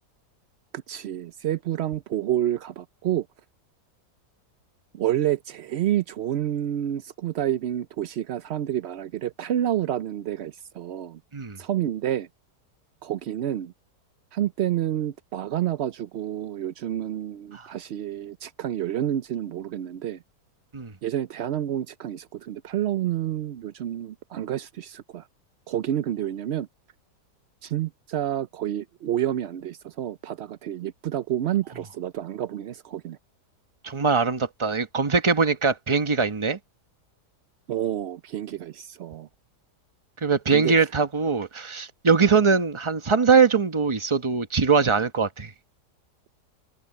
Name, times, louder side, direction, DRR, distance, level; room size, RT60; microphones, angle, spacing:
voice 1, 0.9-3.3 4.9-11.2 11.6-12.3 13.0-13.7 14.3-20.2 21.0-25.2 25.7-26.7 27.6-33.2 37.7-39.3 40.5-40.8 42.2-42.4, right 11 dB, 90° right, 0.5 m, -29 dB
voice 2, 33.8-36.6 40.2-45.5, right 5 dB, 20° right, 0.9 m, -22 dB
omnidirectional pair, 1.8 m